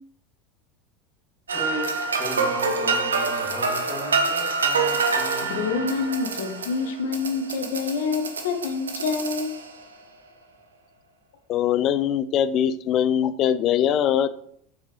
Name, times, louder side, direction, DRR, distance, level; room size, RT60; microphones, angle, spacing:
voice 1, 1.5-5.8, equal, 5° left, -2 dB, 2.4 m, -36 dB
sound 1, 1.5-9.8, right 4 dB, 75° right, 0.8 m, -26 dB
voice 2, 5.5-9.5, left 5 dB, 60° left, 6 dB, 1.2 m, -27 dB
voice 3, 11.5-14.3, left 9 dB, 40° left, 14 dB, 0.5 m, -22 dB
6.9 x 6.6 x 3.2 m, 0.66 s
figure-of-eight pair, 75°, 0 cm